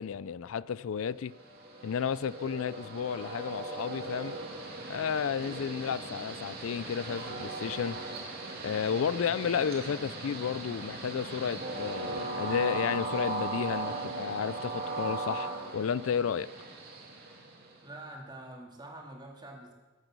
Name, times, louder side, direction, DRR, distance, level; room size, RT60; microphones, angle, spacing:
voice 1, 0.0-1.3 1.8-4.4 4.9-8.0 8.6-16.5, left 7 dB, 70° left, 0.4 m, -32 dB
Train, 1.3-18.0, right 2 dB, 50° right, 2.8 m, -38 dB
voice 2, 17.8-19.7, right 1 dB, 20° right, 2.8 m, -46 dB
22.5 x 9.1 x 6.2 m
head